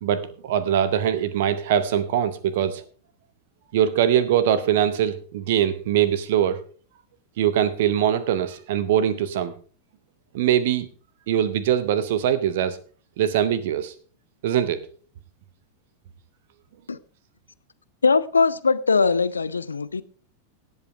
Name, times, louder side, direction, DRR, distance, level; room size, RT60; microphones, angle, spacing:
voice 1, 0.0-2.8 3.7-6.6 7.4-9.5 10.3-10.9 11.3-12.8 13.2-13.9 14.4-14.9, right 10 dB, 55° right, 0.8 m, -22 dB
voice 2, 18.0-20.0, left 4 dB, 75° left, 0.6 m, -21 dB
18.0 x 8.1 x 3.3 m
figure-of-eight pair, 90°, 0 cm